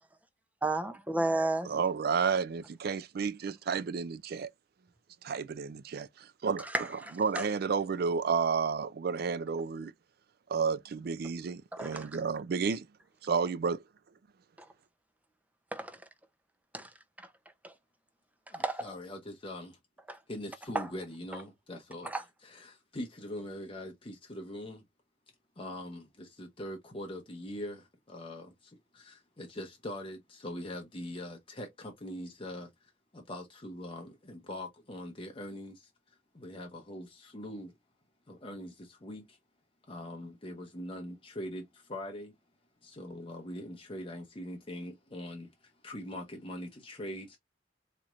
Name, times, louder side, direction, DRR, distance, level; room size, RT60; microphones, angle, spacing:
voice 1, 0.6-1.7 6.6-7.4 11.7-12.1 15.7-16.0 16.7-16.9 17.6-17.7 18.5-18.9 20.1-20.2 20.7-20.9 22.0-22.2, right 2 dB, 10° right, 0.5 m, -32 dB
voice 2, 1.6-4.5 5.2-6.7 7.2-9.9 10.5-12.9 13.2-13.8, right 5 dB, 55° right, 0.4 m, -31 dB
voice 3, 18.5-19.8 20.3-22.1 22.4-24.8 25.6-35.9 36.3-37.7 38.3-39.4 39.9-42.3 42.8-47.4, left 1 dB, 30° left, 0.7 m, -42 dB
4.1 x 3.0 x 2.4 m
head